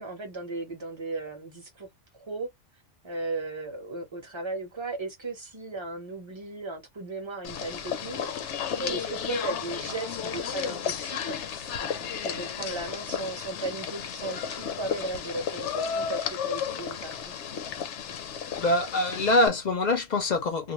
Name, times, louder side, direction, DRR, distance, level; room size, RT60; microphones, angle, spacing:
voice 1, 0.0-1.9 2.1-2.5 3.0-11.4 11.8-17.3, right 2 dB, 25° right, 0.7 m, -36 dB
sound 1, 7.4-19.5, left 8 dB, 70° left, 0.9 m, -33 dB
voice 2, 18.6-20.7, left 2 dB, 55° left, 0.5 m, -24 dB
2.4 x 2.1 x 3.0 m
omnidirectional pair, 1.3 m